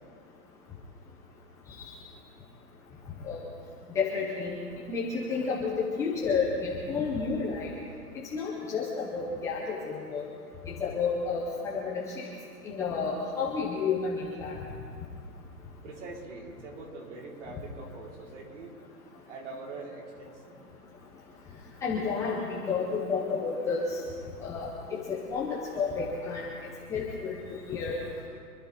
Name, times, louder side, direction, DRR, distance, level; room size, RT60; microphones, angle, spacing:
voice 1, 3.9-4.6 4.9-7.7 8.3-10.3 10.7-12.3 12.6-14.5 21.8-24.0 24.4-26.5 26.9-28.0, left 5 dB, 5° left, -6 dB, 0.8 m, -31 dB
voice 2, 15.8-18.7 19.3-20.6, right 3 dB, 50° right, -2 dB, 4.0 m, -43 dB
26.5 x 11.5 x 4.2 m, 2.2 s
hypercardioid pair, 155°, 46 cm